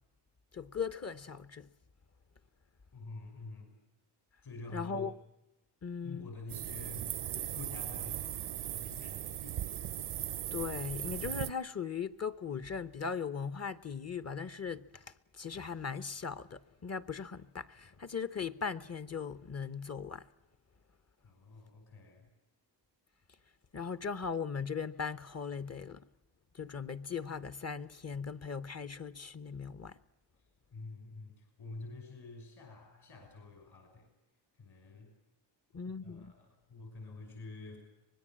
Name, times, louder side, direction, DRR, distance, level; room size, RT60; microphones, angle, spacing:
voice 1, 0.5-1.7 4.7-5.1 5.8-6.3 10.5-20.3 23.7-26.0 26.5-30.0 35.7-36.3, left 6 dB, 35° left, 0.9 m, -39 dB
voice 2, 2.9-3.7 4.4-5.1 6.0-7.2 7.5-8.2 8.6-9.6 21.2-22.3 30.7-34.1 34.6-35.1 36.0-37.8, left 2 dB, 60° left, 6.4 m, -48 dB
sound 1, 6.5-11.5, right 11 dB, 65° right, 0.7 m, -38 dB
25.0 x 20.0 x 7.5 m
cardioid pair, 100°, 43 cm